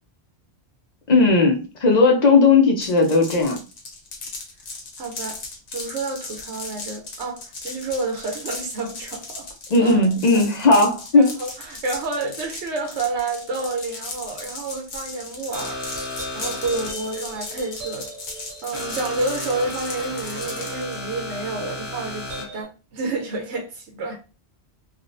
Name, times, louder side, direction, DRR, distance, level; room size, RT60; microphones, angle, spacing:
voice 1, 1.1-3.6 9.7-11.3, left 3 dB, 50° left, 0.5 m, -16 dB
sound 1, 2.8-21.0, left 3 dB, 85° left, 1.1 m, -36 dB
voice 2, 5.0-5.4 5.7-9.5 9.8-10.0 10.3-10.4 11.2-15.8 16.3-18.1 18.6-24.1, right 3 dB, 85° right, 1.0 m, -29 dB
sound 2, 15.5-22.6, left 1 dB, 20° right, 1.6 m, -34 dB
3.5 x 2.2 x 2.5 m
omnidirectional pair, 1.1 m